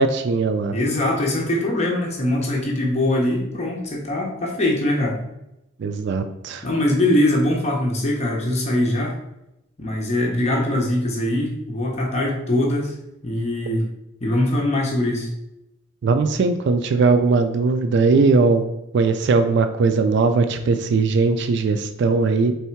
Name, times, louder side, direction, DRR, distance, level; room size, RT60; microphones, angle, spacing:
voice 1, 0.0-0.8 5.8-6.6 16.0-18.6 18.9-22.5, right 4 dB, 60° right, 8 dB, 0.3 m, -19 dB
voice 2, 0.7-5.2 6.6-9.1 9.8-13.0 13.2-13.9 14.2-15.3, left 1 dB, 35° left, -1 dB, 0.7 m, -22 dB
3.5 x 3.3 x 4.4 m, 0.87 s
head